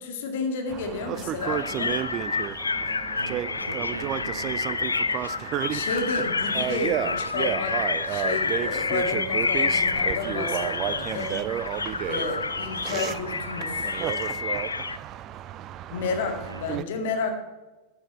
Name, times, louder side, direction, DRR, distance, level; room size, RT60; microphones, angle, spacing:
voice 1, 0.0-2.0 5.4-7.7 8.1-11.5 12.1-13.9 15.9-17.4, left 4 dB, 55° left, 4 dB, 2.2 m, -31 dB
sound 1, 0.7-16.8, right 11 dB, 35° right, 0.5 m, -32 dB
sound 2, 1.4-15.0, left 4 dB, 75° left, 0.5 m, -29 dB
voice 2, 3.2-4.7 7.1-7.6 7.9-8.1 16.4-16.7, right 1 dB, 90° right, 9 dB, 1.1 m, -41 dB
14.5 x 10.0 x 4.4 m, 1.2 s
figure-of-eight pair, 90°, 0 cm